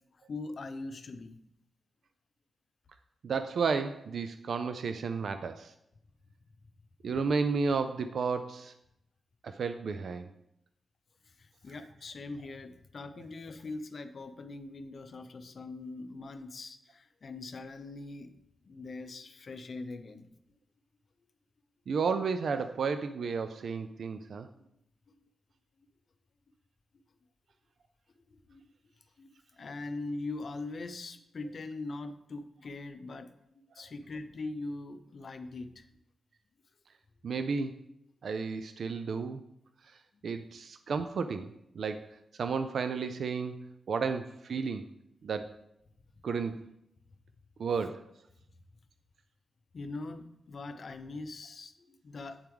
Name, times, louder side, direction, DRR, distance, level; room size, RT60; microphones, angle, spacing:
voice 1, 0.1-1.4 11.2-18.3 18.6-20.3 24.5-24.6 25.1-25.2 28.1-28.6 29.2-35.9 49.7-52.4, left 3 dB, 60° left, 9 dB, 0.6 m, -42 dB
voice 2, 3.2-5.7 7.0-8.7 9.4-10.3 21.9-24.5 37.2-37.7 38.2-39.4 40.2-43.6 43.9-44.8 45.2-45.6 46.2-46.6 47.6-48.0, right 5 dB, 75° right, 9 dB, 0.3 m, -32 dB
8.7 x 3.5 x 4.5 m, 0.79 s
cardioid pair, 60°, 0 cm